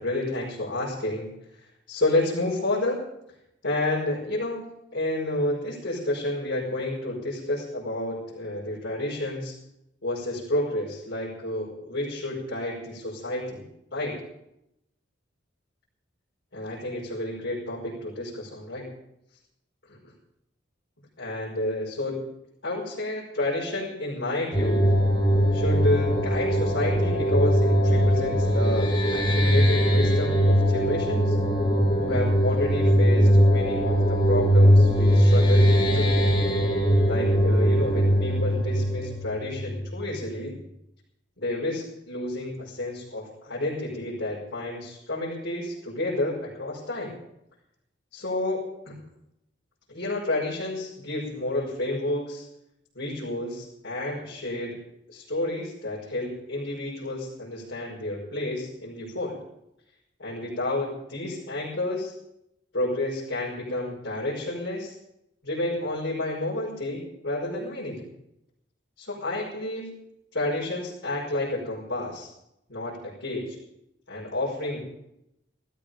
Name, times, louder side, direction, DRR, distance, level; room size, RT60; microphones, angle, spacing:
voice 1, 0.0-3.0 3.6-4.6 4.9-9.6 10.0-13.6 13.9-14.2 16.5-18.9 21.2-22.2 22.6-24.8 25.5-31.4 32.0-36.2 37.0-40.6 41.4-47.2 48.1-49.0 49.9-52.5 52.9-54.8 55.1-59.4 60.2-62.1 62.7-65.0 65.4-68.1 69.0-69.9 70.3-72.3 72.7-73.6 74.1-74.8, left 1 dB, 65° left, -7 dB, 5.4 m, -30 dB
sound 1, 24.5-40.0, equal, 25° left, 4.0 m, -21 dB
17.5 x 14.0 x 5.2 m, 0.82 s
head